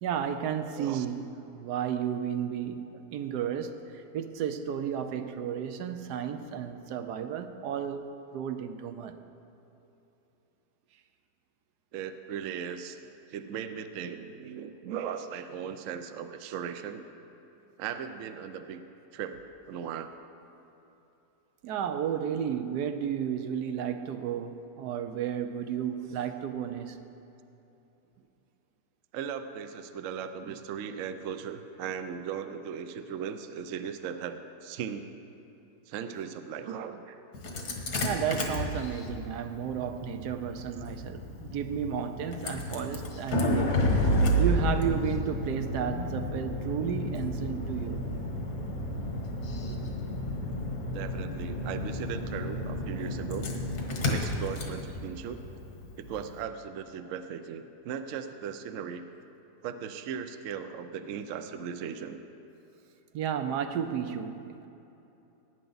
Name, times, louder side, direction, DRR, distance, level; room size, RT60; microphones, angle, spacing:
voice 1, 0.0-9.1 21.6-27.0 38.0-48.0 49.6-49.8 63.1-64.7, right 8 dB, 80° right, 1.2 m, -33 dB
voice 2, 11.9-13.0 13.3-17.0 17.8-18.8 19.1-19.4 19.7-20.1 29.1-35.1 35.9-37.2 50.9-53.5 54.0-55.4 55.9-59.0 59.6-62.2, right 7 dB, 65° right, 0.8 m, -37 dB
Engine starting, 37.3-56.3, equal, 75° left, 1.9 m, -31 dB
18.0 x 9.0 x 4.0 m
omnidirectional pair, 1.7 m